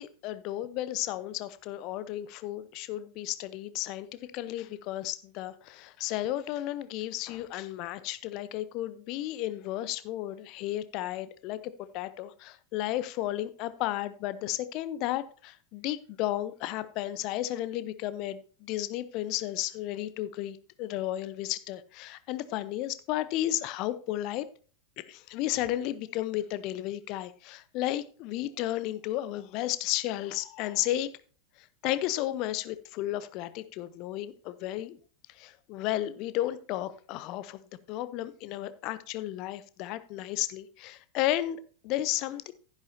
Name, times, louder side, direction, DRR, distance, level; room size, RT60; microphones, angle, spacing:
voice 1, 0.0-24.5 25.0-31.1 31.8-35.0 35.3-37.6 37.9-42.5, left 14 dB, 40° left, 14 dB, 0.7 m, -33 dB
11.5 x 10.5 x 2.7 m, 0.40 s
figure-of-eight pair, 90°, 0 cm